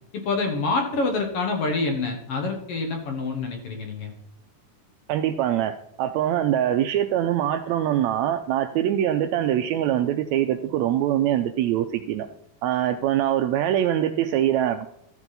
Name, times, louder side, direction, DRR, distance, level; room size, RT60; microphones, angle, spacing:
voice 1, 0.1-4.1, left 3 dB, 60° left, 4 dB, 1.9 m, -26 dB
voice 2, 5.1-5.7 6.0-12.3 12.6-14.9, right 11 dB, 85° right, 8 dB, 1.6 m, -23 dB
13.0 x 7.2 x 4.0 m, 0.75 s
omnidirectional pair, 3.6 m